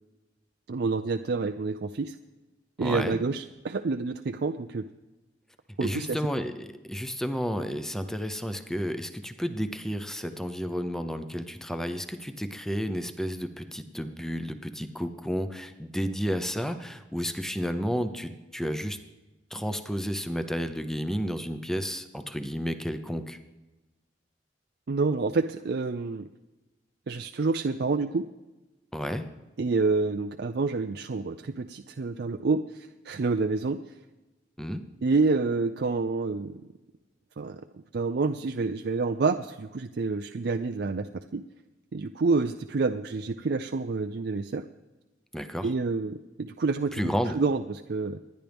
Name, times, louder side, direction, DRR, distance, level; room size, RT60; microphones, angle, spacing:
voice 1, 0.7-2.2 2.8-4.9 5.8-6.2 24.9-26.3 27.1-28.2 29.6-33.8 35.0-36.6 37.4-41.4 41.9-44.6 45.6-46.9 47.3-48.2, right 3 dB, 60° right, 7 dB, 0.5 m, -28 dB
voice 2, 2.8-3.2 5.8-19.0 19.5-23.4 28.9-29.3 34.6-34.8 45.3-45.7 46.9-47.4, equal, 5° left, 9 dB, 0.7 m, -31 dB
26.5 x 10.5 x 3.5 m, 1.1 s
head